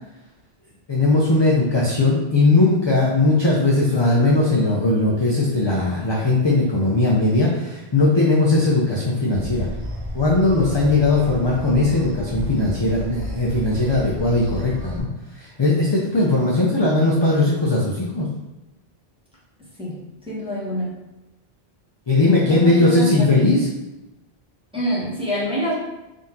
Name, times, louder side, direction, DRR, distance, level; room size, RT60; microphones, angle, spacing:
voice 1, 0.9-9.7 10.1-15.1 15.4-18.3 22.1-23.7, left 2 dB, 35° left, -4 dB, 0.5 m, -19 dB
sound 1, 9.3-15.0, equal, 40° right, 0.6 m, -32 dB
voice 2, 20.3-21.0 22.3-23.3 24.7-25.7, equal, 5° right, -9 dB, 1.2 m, -26 dB
3.8 x 2.8 x 3.6 m, 0.97 s
omnidirectional pair, 1.1 m